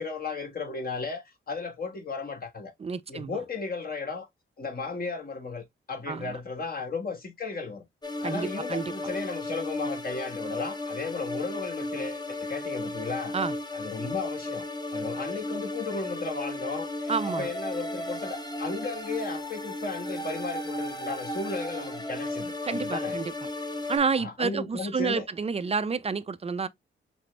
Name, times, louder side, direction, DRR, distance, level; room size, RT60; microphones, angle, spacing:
voice 1, 0.0-2.7 3.1-4.3 4.6-7.9 8.2-13.3 13.7-14.7 14.9-17.1 17.4-23.2 24.2-25.3, left 4 dB, 45° left, 1.4 m, -35 dB
voice 2, 2.8-3.4 6.1-6.4 8.2-8.9 13.3-13.5 17.1-17.5 22.6-23.3 23.9-26.7, right 5 dB, 30° right, 0.5 m, -29 dB
sound 1, 8.0-24.0, left 1 dB, 20° left, 0.9 m, -34 dB
5.9 x 2.0 x 3.2 m
cardioid pair, 80°, 21 cm